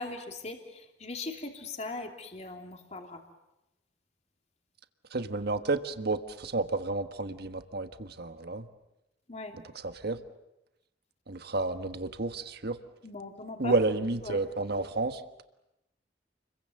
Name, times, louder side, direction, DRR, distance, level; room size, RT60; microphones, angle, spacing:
voice 1, 0.0-3.2 9.3-9.6 13.0-13.7 14.2-14.4 14.8-14.9, left 3 dB, 40° left, 3 dB, 2.9 m, -40 dB
voice 2, 5.1-8.7 9.8-10.2 11.3-12.8 13.6-15.2, right 3 dB, 60° right, 9 dB, 1.4 m, -31 dB
29.5 x 22.5 x 7.8 m, 0.90 s
head